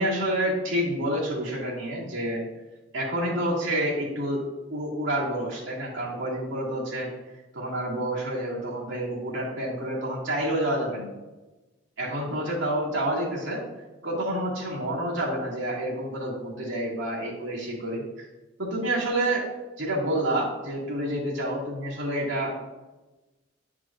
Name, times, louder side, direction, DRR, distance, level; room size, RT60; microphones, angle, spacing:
voice 1, 0.0-2.4 2.9-4.4 4.7-7.1 7.5-11.1 12.0-13.6 14.0-18.3 18.6-19.5 19.8-22.6, right 1 dB, 75° right, -5 dB, 2.0 m, -28 dB
9.6 x 4.8 x 2.4 m, 1.1 s
head